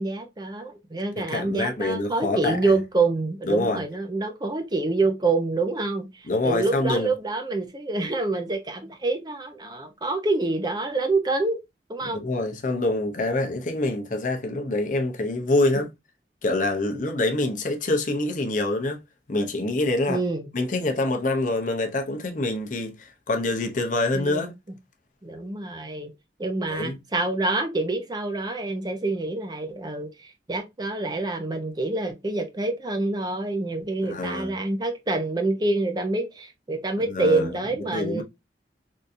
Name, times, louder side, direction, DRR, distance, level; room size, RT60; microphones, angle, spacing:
voice 1, 0.0-11.6 11.9-12.2 20.1-20.5 24.1-24.5 25.2-26.1 26.4-38.2, right 2 dB, 25° right, 0.6 m, -27 dB
voice 2, 1.2-2.6 3.5-3.8 6.3-7.1 12.1-15.9 16.4-19.0 19.3-20.2 20.5-24.5 26.7-27.0 34.0-34.5 37.1-37.5 37.9-38.2, left 2 dB, 45° left, 0.7 m, -25 dB
3.7 x 2.6 x 2.5 m
head